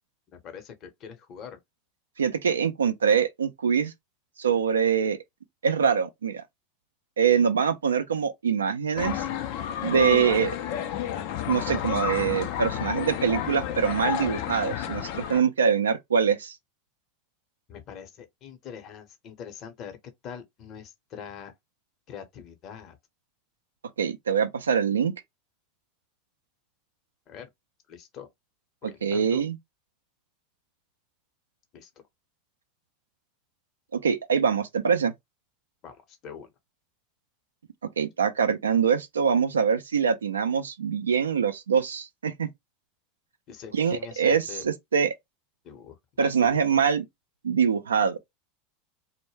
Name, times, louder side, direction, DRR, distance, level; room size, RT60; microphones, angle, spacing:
voice 1, 0.3-1.6 17.7-20.0 20.2-21.5 22.1-23.0 27.3-27.5 27.9-28.3 28.8-29.4 31.7-31.9 35.8-36.5 43.5-44.7 45.6-46.6, left 7 dB, 45° left, 0.8 m, -43 dB
voice 2, 2.2-3.9 4.4-5.2 5.6-6.4 7.2-9.2 9.8-10.6 11.5-16.6 24.0-25.1 29.0-29.6 33.9-35.1 38.0-42.5 43.7-45.1 46.2-47.0 47.4-48.2, right 7 dB, 90° right, 0.3 m, -24 dB
sound 1, 9.0-15.4, left 10 dB, 65° left, 0.4 m, -30 dB
2.2 x 2.1 x 3.1 m
hypercardioid pair, 90°, 0 cm